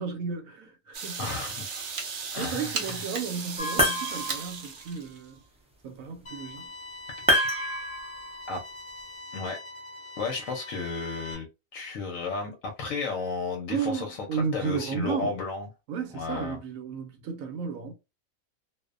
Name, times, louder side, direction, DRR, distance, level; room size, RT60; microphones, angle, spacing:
voice 1, 0.0-1.4 2.4-5.4 5.8-6.7 13.7-15.4 15.9-17.9, right 6 dB, 80° right, 1.0 m, -33 dB
sound 1, 0.9-5.3, right 5 dB, 60° right, 0.5 m, -36 dB
voice 2, 1.2-1.9 2.3-3.0 8.5-8.6 9.3-9.6 10.2-15.7 16.1-16.6, left 4 dB, 75° left, 1.0 m, -33 dB
sound 2, 3.6-4.6 7.3-8.4, equal, 10° right, 0.4 m, -26 dB
sound 3, 6.3-11.4, left 2 dB, 45° left, 0.9 m, -43 dB
2.5 x 2.0 x 2.4 m
omnidirectional pair, 1.4 m